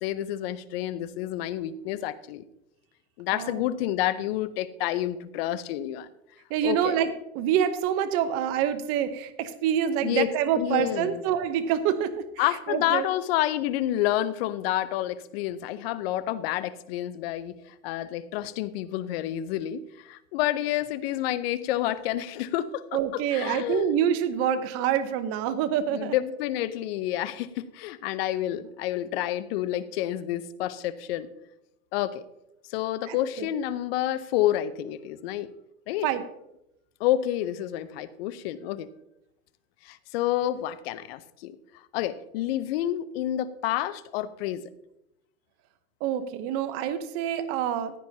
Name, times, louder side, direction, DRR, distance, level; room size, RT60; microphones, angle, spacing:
voice 1, 0.0-2.4 3.2-6.1 6.6-7.0 10.0-10.3 10.6-11.2 12.4-23.9 25.9-31.3 31.9-32.3 32.7-35.5 35.9-36.1 37.0-38.9 39.8-44.7, left 13 dB, 45° left, 15 dB, 0.7 m, -29 dB
voice 2, 6.5-7.1 7.3-13.1 22.9-26.1 33.1-33.5 36.0-36.2 46.0-47.9, right 9 dB, 30° right, 10 dB, 0.9 m, -26 dB
15.5 x 9.6 x 2.8 m, 0.85 s
supercardioid pair, 150°, 43 cm